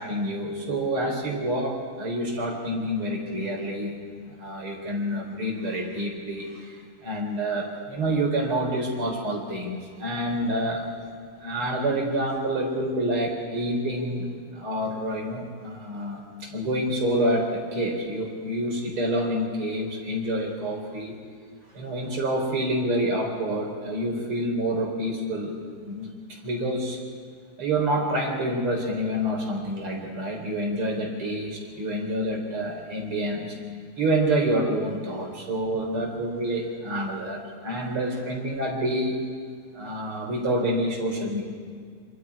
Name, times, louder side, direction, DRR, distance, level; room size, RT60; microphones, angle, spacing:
voice 1, 0.0-4.0 4.4-10.9 11.4-14.3 14.5-21.1 21.7-25.6 25.9-26.1 26.4-27.0 27.6-33.6 34.0-39.1 39.7-41.4, right 1 dB, 75° right, 1 dB, 5.0 m, -27 dB
27.0 x 26.5 x 4.9 m, 2.1 s
omnidirectional pair, 2.4 m